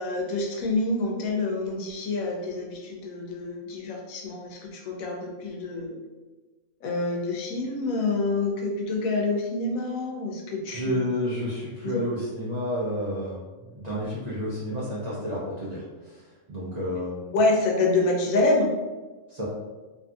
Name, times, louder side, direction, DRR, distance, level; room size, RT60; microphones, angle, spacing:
voice 1, 0.0-6.0 6.8-11.1 11.8-12.0 17.3-18.7, left 2 dB, 75° left, 0 dB, 1.0 m, -27 dB
voice 2, 10.7-16.2 16.5-17.3 19.3-19.4, equal, 50° right, -10 dB, 0.5 m, -31 dB
2.7 x 2.5 x 2.3 m, 1.3 s
omnidirectional pair, 1.5 m